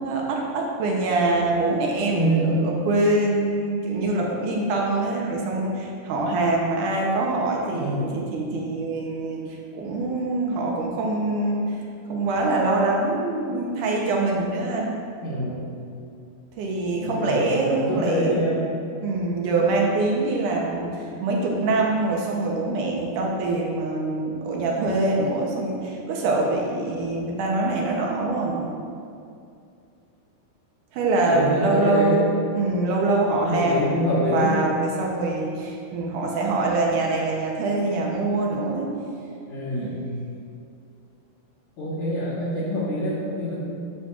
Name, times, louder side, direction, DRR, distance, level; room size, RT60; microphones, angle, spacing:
voice 1, 0.0-11.8 12.1-15.0 16.6-18.4 19.0-28.7 30.9-39.0 39.7-39.9, right 2 dB, 70° right, -2 dB, 2.1 m, -24 dB
voice 2, 2.1-2.6 7.7-8.1 12.3-12.5 15.2-15.7 17.0-18.7 21.1-21.3 31.3-32.3 33.4-34.6 39.5-40.0 41.8-43.6, equal, 60° left, -11 dB, 2.6 m, -25 dB
9.6 x 7.3 x 2.4 m, 2.4 s
omnidirectional pair, 4.2 m